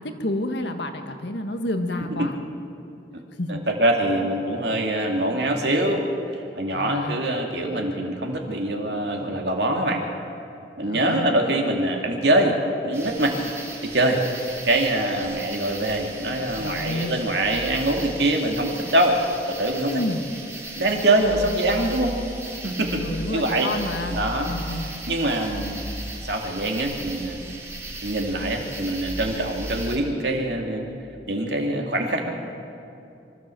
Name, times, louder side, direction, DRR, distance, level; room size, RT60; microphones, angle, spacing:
voice 1, 0.0-2.4 3.4-3.6 6.7-7.2 10.8-11.3 16.5-17.2 19.8-20.3 23.0-24.9, left 1 dB, 65° left, 6 dB, 1.6 m, -29 dB
voice 2, 3.5-6.0 6.5-10.0 10.8-12.6 12.8-13.4 13.8-14.2 14.6-19.2 19.5-19.9 20.8-22.2 22.6-23.0 23.3-23.7 24.1-24.5 25.1-25.9 26.2-27.4 28.0-30.9 31.3-32.3, right 1 dB, 65° right, 2 dB, 2.5 m, -24 dB
sound 1, 12.9-30.0, right 1 dB, 15° right, 2.4 m, -36 dB
24.5 x 13.5 x 7.7 m, 2.6 s
head